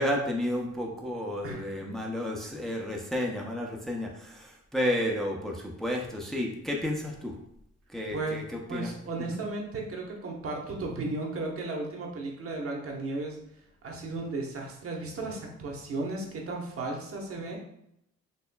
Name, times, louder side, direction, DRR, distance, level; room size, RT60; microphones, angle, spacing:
voice 1, 0.0-7.4 7.9-9.4, left 1 dB, ahead, -1 dB, 0.5 m, -32 dB
voice 2, 8.7-13.4 13.8-17.6, right 3 dB, 50° right, 0 dB, 1.0 m, -35 dB
4.3 x 2.9 x 2.2 m, 0.76 s
cardioid pair, 90°, 30 cm